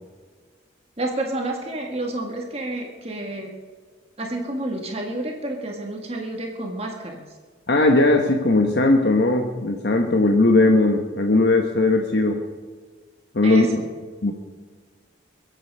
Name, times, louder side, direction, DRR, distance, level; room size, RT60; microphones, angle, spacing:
voice 1, 1.0-3.5 4.2-7.2 13.4-13.8, right 1 dB, 30° right, 1 dB, 1.8 m, -29 dB
voice 2, 7.7-12.4 13.3-13.8 14.2-14.3, left 2 dB, 60° left, 3 dB, 1.1 m, -18 dB
23.0 x 7.9 x 5.5 m, 1.6 s
head